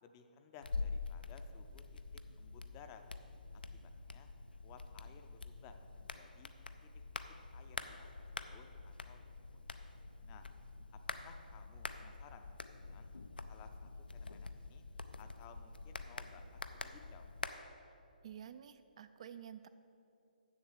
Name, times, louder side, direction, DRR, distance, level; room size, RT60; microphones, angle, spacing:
voice 1, 0.0-2.0 2.4-3.0 3.5-4.3 4.6-6.5 6.8-7.0 7.5-8.1 8.4-9.4 10.3-10.5 11.1-13.1 13.5-14.8 15.2-17.3, left 7 dB, 25° left, 7 dB, 0.5 m, -59 dB
sound 1, 0.6-17.5, left 3 dB, 75° left, 0.5 m, -46 dB
voice 2, 18.2-19.7, right 9 dB, 40° right, 11 dB, 0.3 m, -50 dB
7.3 x 7.2 x 7.1 m, 2.7 s
figure-of-eight pair, 135°, 5 cm